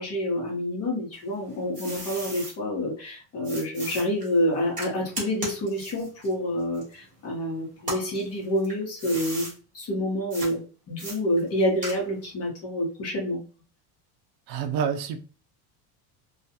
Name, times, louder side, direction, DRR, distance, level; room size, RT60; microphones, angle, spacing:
voice 1, 0.0-13.4, equal, 30° left, -2 dB, 1.0 m, -28 dB
sound 1, 1.1-2.6 3.4-7.4 7.8-9.6 10.3-10.5 11.0-12.3, right 1 dB, 15° right, 1.1 m, -37 dB
voice 2, 14.5-15.2, right 7 dB, 75° right, 6 dB, 0.6 m, -27 dB
2.4 x 2.2 x 2.7 m, 0.37 s
cardioid pair, 155°, 45 cm